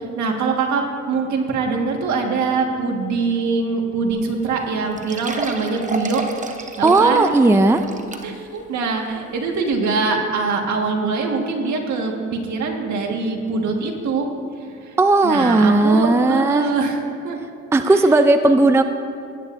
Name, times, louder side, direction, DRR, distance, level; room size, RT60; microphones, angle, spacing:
voice 1, 0.0-6.2 6.8-7.3 8.2-14.3 14.6-15.0 15.2-17.0 17.2-17.4 17.9-18.0, right 4 dB, 70° right, 2 dB, 1.7 m, -23 dB
sound 1, 4.1-4.2 4.5-4.6 5.0-8.6 9.0-9.1 9.7-9.8, right 3 dB, 25° right, 1.0 m, -32 dB
voice 2, 6.8-7.8 15.0-16.7 17.7-18.8, right 2 dB, 10° right, 8 dB, 0.5 m, -15 dB
18.5 x 9.7 x 2.6 m, 2.5 s
cardioid pair, 90°, 30 cm